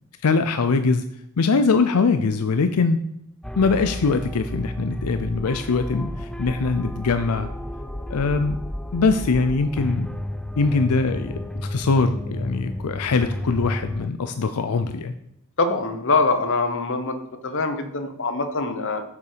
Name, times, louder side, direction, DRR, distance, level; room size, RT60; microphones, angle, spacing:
voice 1, 0.2-1.0 1.4-3.0 3.6-7.5 8.1-8.6 8.9-10.1 10.6-15.1, left 4 dB, 90° left, 9 dB, 0.5 m, -22 dB
sound 1, 3.4-14.1, left 1 dB, 5° left, 0.3 m, -32 dB
voice 2, 15.6-17.2 17.4-19.0, left 3 dB, 60° left, 7 dB, 1.1 m, -23 dB
7.0 x 6.8 x 5.1 m, 0.76 s
head